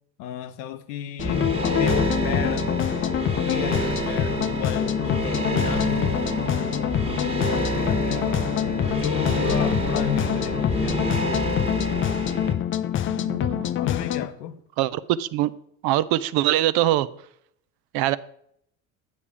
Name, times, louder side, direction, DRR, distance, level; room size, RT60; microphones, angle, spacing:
voice 1, 0.2-2.7 3.3-6.2 7.6-11.3 13.7-14.6, left 10 dB, 75° left, 0.8 m, -33 dB
sound 1, 1.2-14.3, left 11 dB, 25° left, 0.4 m, -26 dB
sound 2, 1.2-12.5, right 1 dB, 10° right, 1.5 m, -28 dB
voice 2, 13.1-13.7 14.8-15.5 15.8-17.1 17.9-18.2, right 14 dB, 50° right, 0.5 m, -23 dB
8.6 x 5.7 x 4.9 m
hypercardioid pair, 70°, 48 cm